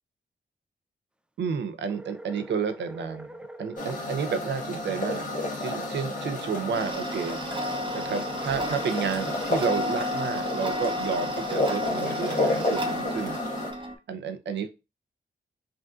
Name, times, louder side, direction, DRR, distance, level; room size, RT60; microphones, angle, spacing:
voice 1, 1.4-5.3 5.6-7.4 7.9-13.4 13.7-14.7, right 6 dB, 75° right, 9 dB, 0.6 m, -31 dB
sound 1, 1.9-4.0 7.9-10.1, right 1 dB, 5° right, 0.3 m, -43 dB
sound 2, 3.8-13.7, left 2 dB, 45° left, 1.4 m, -31 dB
Tick-tock, 6.7-13.9, left 1 dB, 25° right, 0.8 m, -33 dB
5.0 x 2.6 x 2.3 m, 0.28 s
cardioid pair, 60°, 19 cm